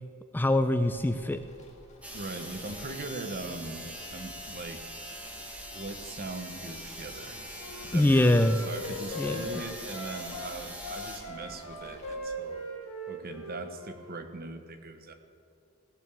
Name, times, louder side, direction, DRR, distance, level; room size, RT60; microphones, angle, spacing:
voice 1, 0.3-1.4 7.9-8.6 9.2-9.5, left 1 dB, 10° left, 9 dB, 0.4 m, -23 dB
sound 1, 0.8-12.2, left 1 dB, 35° left, 1.8 m, -52 dB
sound 2, 2.0-11.2, equal, 5° right, 1.6 m, -43 dB
voice 2, 2.1-4.9 5.7-7.4 7.8-12.7 13.1-15.1, right 2 dB, 45° right, 7 dB, 1.0 m, -40 dB
Wind instrument woodwind instrument, 7.6-10.5 10.8-14.2, left 1 dB, 90° left, 1.8 m, -40 dB
17.0 x 6.9 x 6.8 m, 2.6 s
head